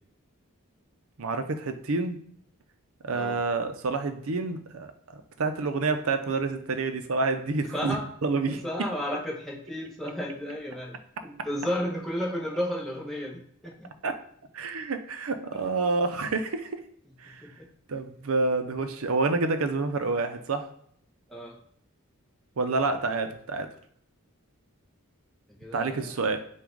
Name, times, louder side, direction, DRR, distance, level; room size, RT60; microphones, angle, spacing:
voice 1, 1.2-2.2 3.0-8.0 8.2-8.6 14.0-14.1 14.5-16.8 17.2-17.5 17.9-20.7 22.6-23.7 25.7-26.4, right 3 dB, 75° right, 8 dB, 0.6 m, -28 dB
voice 2, 7.7-8.0 8.5-10.9 11.2-13.9 17.4-17.5 21.3-21.5 25.6-26.1, equal, ahead, -4 dB, 1.1 m, -33 dB
5.9 x 2.4 x 3.8 m, 0.66 s
head